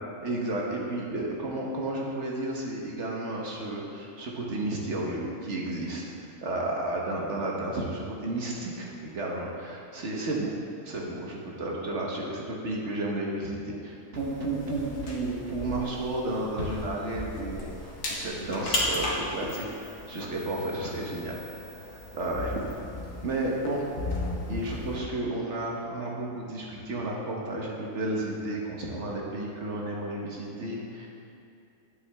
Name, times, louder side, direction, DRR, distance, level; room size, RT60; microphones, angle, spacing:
voice 1, 0.2-6.0 6.4-10.5 10.8-21.4 21.9-22.6 23.2-23.8 24.5-31.1, right 2 dB, 50° right, -2 dB, 1.4 m, -32 dB
sound 1, 14.1-25.0, left 2 dB, 85° left, 1.8 m, -36 dB
9.4 x 7.5 x 3.5 m, 2.5 s
omnidirectional pair, 1.6 m